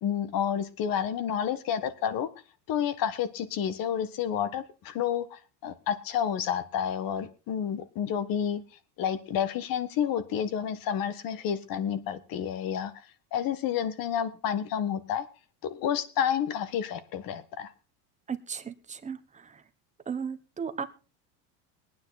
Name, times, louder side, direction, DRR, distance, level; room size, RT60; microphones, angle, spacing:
voice 1, 0.0-2.3 2.7-8.6 9.0-12.9 13.3-15.2 15.7-17.7, left 9 dB, 45° left, 13 dB, 1.6 m, -30 dB
voice 2, 18.3-19.6 20.1-20.9, right 6 dB, 15° right, 9 dB, 1.1 m, -36 dB
21.0 x 9.5 x 4.1 m, 0.33 s
supercardioid pair, 140°, 46 cm